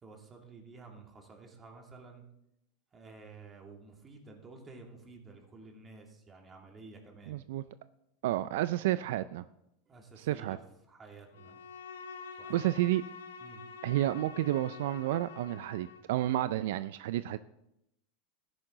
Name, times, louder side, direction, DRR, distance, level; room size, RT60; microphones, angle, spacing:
voice 1, 0.0-2.2 2.9-7.4 9.9-10.6 10.9-11.6 12.4-12.6 13.4-13.6, right 3 dB, 25° right, 2 dB, 2.7 m, -52 dB
voice 2, 7.3-7.6 8.2-9.4 10.2-10.6 12.5-13.0 13.8-17.4, right 14 dB, 75° right, 14 dB, 0.4 m, -30 dB
Bowed string instrument, 11.3-16.1, left 6 dB, 90° left, 1.1 m, -47 dB
13.5 x 10.5 x 3.9 m, 0.81 s
hypercardioid pair, 110°, 0 cm